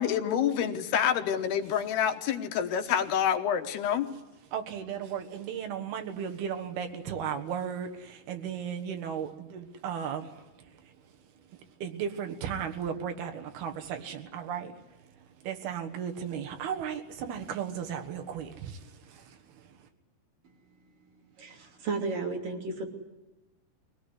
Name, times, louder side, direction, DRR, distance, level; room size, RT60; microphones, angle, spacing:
voice 1, 0.0-4.1, left 9 dB, 80° left, 3.2 m, -27 dB
voice 2, 4.5-11.0 11.4-19.9, right 8 dB, 75° right, 3.4 m, -36 dB
voice 3, 21.4-22.8, right 3 dB, 55° right, 4.3 m, -33 dB
23.5 x 18.0 x 9.8 m
omnidirectional pair, 4.6 m